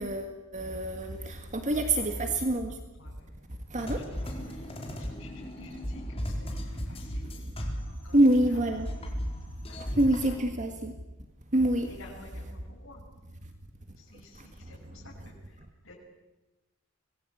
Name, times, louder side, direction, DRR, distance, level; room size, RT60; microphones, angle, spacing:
voice 1, 0.0-2.7 3.7-4.0 8.1-8.9 10.0-10.9 11.5-11.9, right 1 dB, 35° right, 5 dB, 1.8 m, -26 dB
voice 2, 2.0-2.3 3.0-3.3 3.9-4.0 4.5-4.7 5.0-7.3 8.0-9.1 9.7-10.0 10.3-10.4 11.9-13.0 13.9-15.9, left 2 dB, 80° left, -5 dB, 7.9 m, -52 dB
sound 1, 3.7-8.4 8.6-10.3, equal, 30° left, 4.6 m, -36 dB
25.5 x 19.5 x 8.7 m, 1.1 s
head